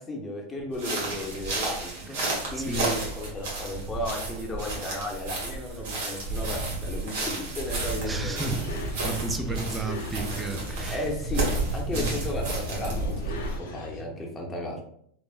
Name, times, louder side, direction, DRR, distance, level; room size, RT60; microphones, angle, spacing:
voice 1, 0.0-8.8 10.9-14.8, left 1 dB, 15° left, 0 dB, 0.8 m, -35 dB
sound 1, 0.7-13.6, right 2 dB, 65° right, 1.2 m, -31 dB
voice 2, 2.1-2.9 8.1-8.6 9.0-11.0 11.9-12.1, right 3 dB, 15° right, 5 dB, 0.4 m, -33 dB
sound 2, 7.8-14.0, left 1 dB, 75° left, 0.7 m, -39 dB
3.2 x 2.0 x 2.4 m, 0.67 s
hypercardioid pair, 100°, 0 cm